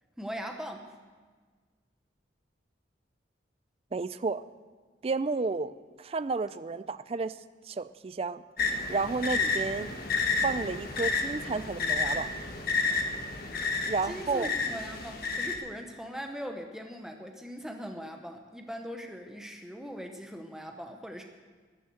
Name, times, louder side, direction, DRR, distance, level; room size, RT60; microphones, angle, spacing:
voice 1, 0.2-1.0 14.0-21.2, equal, 5° right, 3 dB, 0.9 m, -40 dB
voice 2, 3.9-4.4 5.0-5.7 6.0-7.4 7.7-8.4 8.9-10.1 10.4-12.3 13.8-14.5, right 4 dB, 30° right, 14 dB, 0.4 m, -31 dB
sound 1, 8.6-15.6, left 4 dB, 55° left, 1.5 m, -31 dB
13.0 x 10.0 x 7.7 m, 1.5 s
head